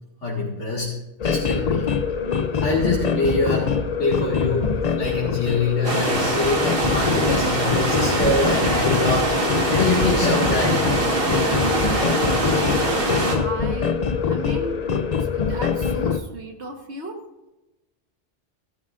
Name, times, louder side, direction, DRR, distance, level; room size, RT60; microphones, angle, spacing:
voice 1, 0.2-0.9 1.2-1.9 2.6-3.7 4.0-10.8, left 2 dB, 85° left, -5 dB, 2.4 m, -24 dB
sound 1, 1.2-16.2, left 6 dB, 45° left, 0.6 m, -24 dB
sound 2, 5.8-13.4, right 2 dB, 50° right, 1.9 m, -23 dB
voice 2, 12.6-13.9 14.3-14.9 15.2-17.2, right 1 dB, 70° right, 3 dB, 1.7 m, -35 dB
15.5 x 13.0 x 2.6 m, 0.98 s
omnidirectional pair, 1.2 m